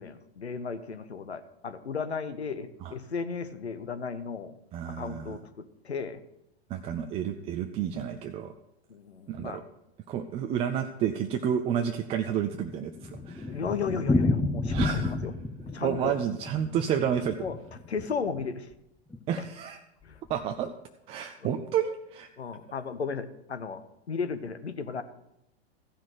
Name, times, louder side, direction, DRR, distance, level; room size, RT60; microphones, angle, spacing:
voice 1, 0.0-4.5 4.9-6.2 8.9-9.6 13.5-15.3 15.7-16.2 17.4-17.6 17.9-18.7 20.0-20.2 22.4-25.0, left 5 dB, 80° left, 11 dB, 1.0 m, -35 dB
voice 2, 4.7-5.4 6.7-8.5 9.3-9.6 10.1-13.6 14.7-15.2 15.8-17.4 19.3-19.8 20.3-20.7 21.1-22.3, right 8 dB, 20° right, 6 dB, 0.4 m, -30 dB
Thunder, 12.5-18.5 18.7-18.8 19.1-19.2 19.4-19.5 20.1-20.4, left 3 dB, 5° left, 0.7 m, -31 dB
14.5 x 6.0 x 6.6 m, 0.82 s
figure-of-eight pair, 100°, 32 cm